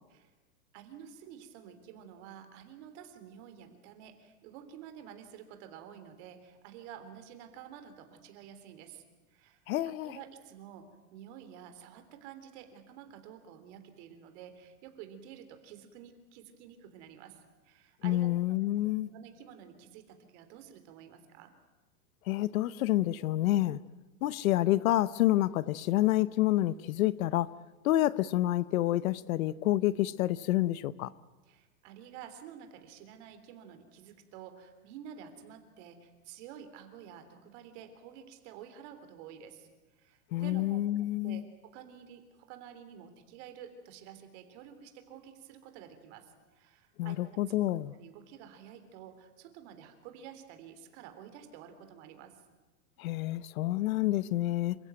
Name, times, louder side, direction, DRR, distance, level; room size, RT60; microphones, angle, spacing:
voice 1, 0.7-9.0 9.3-18.3 18.7-21.5 31.5-39.7 39.9-41.4 41.7-47.2 47.6-47.7 47.9-52.4, right 9 dB, 45° right, 3.5 m, -50 dB
voice 2, 9.7-10.2 18.0-19.1 22.3-23.8 24.2-27.5 27.8-31.1 40.3-41.4 47.0-47.9 53.0-54.8, left 15 dB, 60° left, 0.8 m, -28 dB
27.5 x 15.5 x 9.3 m
supercardioid pair, 160°, 46 cm